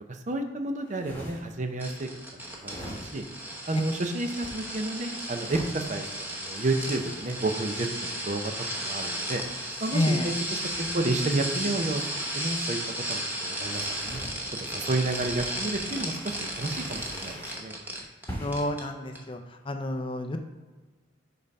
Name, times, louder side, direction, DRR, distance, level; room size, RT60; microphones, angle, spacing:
voice 1, 0.1-2.1 2.4-3.2 3.7-6.0 6.4-9.4 9.8-12.0 12.3-12.8 13.1-14.2 14.6-17.8, right 2 dB, 40° right, 5 dB, 0.6 m, -31 dB
sound 1, 0.8-1.6 2.5-3.4 4.1-4.6 5.3-5.8 6.5-8.0 8.9-12.7 13.6-14.4 15.0-17.7 18.3-18.7, equal, 10° left, 1.2 m, -44 dB
sound 2, 1.8-18.3 18.5-18.8 19.2-19.3, right 1 dB, 10° right, 0.9 m, -34 dB
voice 2, 9.9-10.3 18.4-19.4 19.7-20.4, left 1 dB, 30° left, 6 dB, 0.5 m, -29 dB
5.4 x 4.1 x 5.2 m, 1.3 s
head